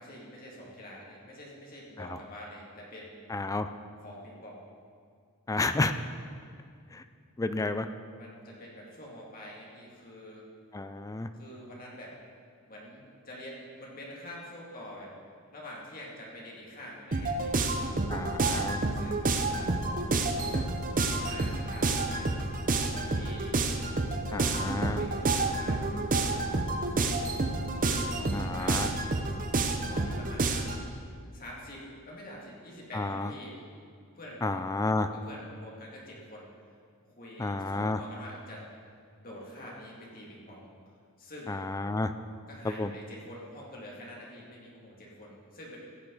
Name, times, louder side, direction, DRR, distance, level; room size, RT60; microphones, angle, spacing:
voice 1, 0.0-3.2 4.0-4.6 8.1-10.4 11.3-12.2 12.7-15.1 15.5-17.6 18.9-20.7 21.0-23.5 24.4-25.8 26.2-27.3 27.7-28.9 29.8-31.0 31.3-33.6 34.2-34.4 35.0-36.5 37.1-38.7 39.2-40.7 41.2-41.5 42.5-45.8, left 1 dB, 40° left, -4 dB, 2.4 m, -46 dB
voice 2, 3.3-3.7 5.5-5.9 6.9-7.0 7.4-7.9 10.7-11.3 18.1-18.8 24.3-25.0 28.3-28.9 32.9-33.3 34.4-35.1 37.4-38.0 41.5-42.1 42.6-42.9, left 2 dB, 15° left, 10 dB, 0.4 m, -31 dB
sound 1, 17.1-30.8, right 2 dB, 40° right, 0.7 m, -29 dB
15.0 x 9.1 x 4.0 m, 2.3 s
head